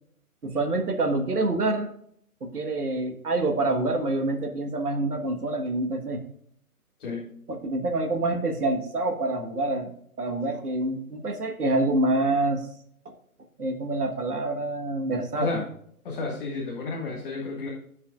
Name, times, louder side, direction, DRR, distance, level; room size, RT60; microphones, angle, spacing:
voice 1, 0.4-1.9 2.4-6.2 7.5-12.7 13.0-13.1 13.6-15.6, right 2 dB, 90° right, 4 dB, 1.6 m, -27 dB
voice 2, 7.0-7.3 15.4-15.6 16.0-17.7, left 3 dB, 35° left, -3 dB, 1.9 m, -31 dB
13.0 x 7.0 x 2.5 m, 0.68 s
hypercardioid pair, 155°, 44 cm